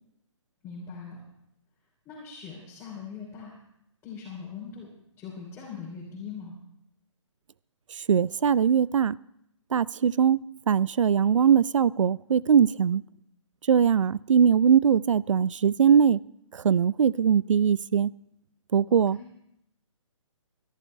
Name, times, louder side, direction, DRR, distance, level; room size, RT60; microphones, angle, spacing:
voice 1, 0.6-1.2 2.0-3.5 4.0-4.9 5.2-6.5 18.9-19.2, left 6 dB, 15° left, 3.0 m, -41 dB
voice 2, 7.9-9.2 9.7-10.4 10.7-13.0 13.7-16.2 16.5-18.1 18.7-19.2, right 7 dB, 70° right, 0.4 m, -21 dB
24.0 x 11.5 x 3.2 m
hypercardioid pair, 145°, 16 cm